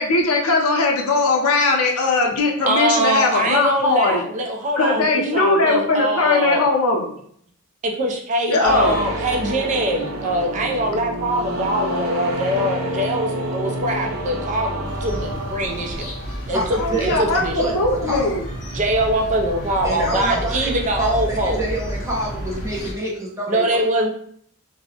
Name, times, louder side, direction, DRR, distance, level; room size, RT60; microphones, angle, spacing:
voice 1, 0.0-4.2 4.8-7.1 8.5-9.1 12.5-12.7 16.7-18.4, left 3 dB, 85° left, 1 dB, 0.5 m, -19 dB
voice 2, 2.7-6.6 7.8-16.1 16.5-17.7 18.7-21.6 23.5-24.1, right 1 dB, 35° right, 2 dB, 0.3 m, -23 dB
sound 1, 8.6-16.5, right 1 dB, 80° right, 0.6 m, -28 dB
sound 2, 14.8-22.9, equal, 30° left, 0.7 m, -31 dB
voice 3, 16.5-18.4 19.8-23.8, right 1 dB, 15° right, -5 dB, 0.7 m, -27 dB
2.6 x 2.0 x 2.7 m, 0.64 s
head